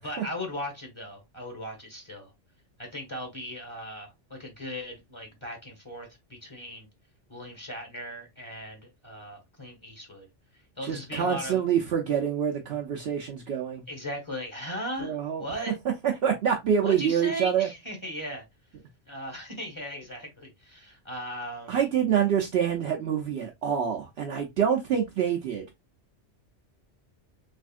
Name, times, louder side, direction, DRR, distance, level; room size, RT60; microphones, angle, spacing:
voice 1, 0.0-2.3 2.8-6.9 7.3-10.3 10.8-11.7 13.9-15.8 16.8-18.4 19.1-21.8, equal, 25° left, 1.1 m, -38 dB
voice 2, 10.8-13.8 15.0-15.4 16.0-17.7 21.7-25.6, right 8 dB, 65° right, 0.8 m, -26 dB
3.4 x 3.2 x 2.4 m
omnidirectional pair, 1.2 m